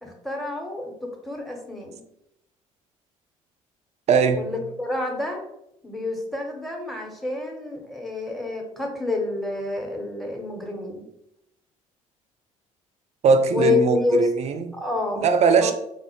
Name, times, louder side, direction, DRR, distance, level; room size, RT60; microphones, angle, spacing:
voice 1, 0.0-2.0 4.3-5.4 5.8-11.1 13.5-14.2 14.7-15.2 15.6-15.7, left 3 dB, ahead, 0.8 m, -28 dB
voice 2, 4.1-4.5 13.2-14.6 15.2-15.7, right 5 dB, 40° right, 0.4 m, -19 dB
3.8 x 2.0 x 2.9 m
figure-of-eight pair, 50°, 18 cm